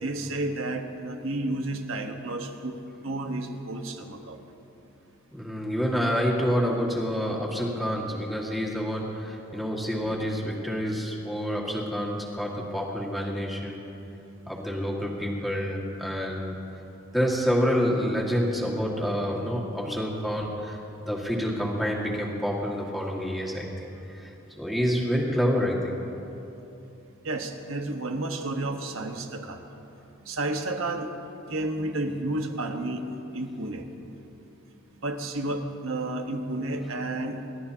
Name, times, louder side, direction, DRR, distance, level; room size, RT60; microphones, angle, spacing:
voice 1, 0.0-2.8 3.0-4.4 27.2-29.6 30.3-31.1 31.5-33.0 33.3-33.8 35.0-37.4, right 2 dB, 80° right, 4 dB, 1.3 m, -31 dB
voice 2, 5.3-13.9 14.5-16.6 17.1-26.0, equal, ahead, -3 dB, 1.9 m, -28 dB
28.5 x 13.0 x 2.8 m, 2.9 s
head